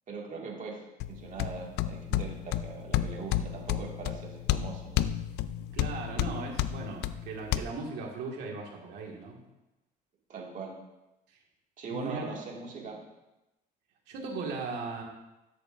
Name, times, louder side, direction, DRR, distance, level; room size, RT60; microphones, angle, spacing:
voice 1, 0.1-0.8 1.1-5.0 10.3-10.7 11.8-13.0, right 4 dB, 50° right, -1 dB, 2.1 m, -41 dB
sound 1, 1.0-7.6, left 12 dB, 80° left, 0.4 m, -32 dB
voice 2, 5.7-9.4 11.3-11.4 11.9-12.2 14.1-15.0, right 4 dB, 80° right, 0 dB, 2.0 m, -38 dB
13.0 x 6.7 x 2.6 m, 0.96 s
cardioid pair, 110°, 17 cm